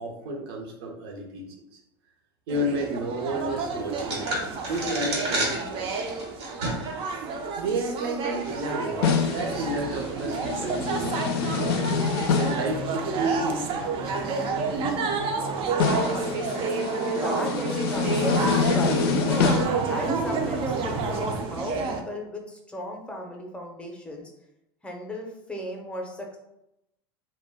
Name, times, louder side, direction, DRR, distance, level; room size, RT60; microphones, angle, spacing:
voice 1, 0.0-1.5 1.7-1.8 2.5-4.3 4.7-7.3 7.5-12.0 12.4-15.1, right 1 dB, 70° right, 1 dB, 0.7 m, -32 dB
sound 1, 2.5-22.0, right 4 dB, 40° right, 0.4 m, -29 dB
sound 2, 4.0-7.0 7.4-7.5 8.3-8.7, right 1 dB, 90° right, 1.1 m, -31 dB
sound 3, 9.0-12.7 15.8-19.7, left 6 dB, 75° left, 0.4 m, -26 dB
voice 2, 16.1-16.6 17.1-19.4 19.9-24.3 24.8-26.4, left 1 dB, 10° left, 1 dB, 0.6 m, -36 dB
2.2 x 2.1 x 3.3 m, 0.86 s
hypercardioid pair, 105°, 13 cm